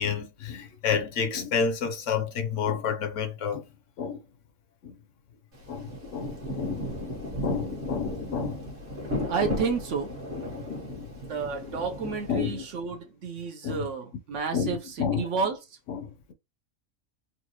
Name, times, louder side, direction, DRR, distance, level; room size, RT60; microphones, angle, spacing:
voice 1, 0.0-3.6 4.0-4.2 5.7-6.8 7.4-8.6 10.5-11.1 12.3-12.7 13.6-13.9 14.5-15.3 15.9-16.3, left 6 dB, 65° left, 0.9 m, -30 dB
Rain, 5.5-12.8, left 1 dB, 40° right, 1.3 m, -35 dB
voice 2, 9.3-10.1 11.3-15.6, right 5 dB, 65° right, 1.0 m, -31 dB
4.0 x 2.3 x 2.9 m
omnidirectional pair, 1.5 m